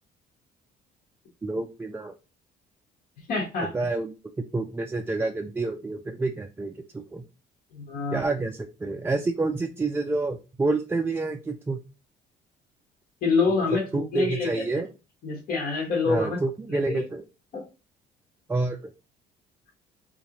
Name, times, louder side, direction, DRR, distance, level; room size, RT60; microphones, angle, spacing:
voice 1, 1.4-2.1 3.7-4.1 4.5-7.2 8.1-11.8 13.6-13.7 13.9-14.9 16.1-17.2 18.5-18.9, right 3 dB, 15° right, 3 dB, 0.3 m, -28 dB
voice 2, 3.3-3.7 7.7-8.2 13.2-14.6 15.2-16.4 16.7-17.0 17.5-17.6, left 4 dB, 65° left, -2 dB, 1.2 m, -26 dB
4.1 x 2.5 x 2.9 m, 0.30 s
cardioid pair, 110°, 17 cm